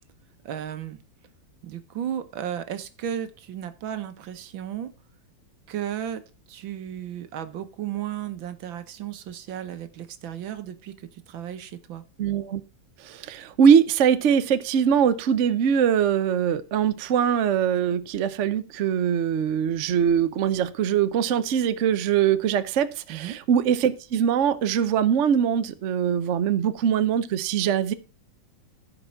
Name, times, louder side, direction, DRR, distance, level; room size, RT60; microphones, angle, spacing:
voice 1, 0.4-1.0 1.6-4.9 5.7-6.2 6.5-12.0 23.1-23.4, right 10 dB, 80° right, 11 dB, 1.8 m, -34 dB
voice 2, 12.2-12.6 13.0-27.9, right 8 dB, 55° right, 12 dB, 0.8 m, -22 dB
15.0 x 5.3 x 4.5 m, 0.33 s
omnidirectional pair, 2.1 m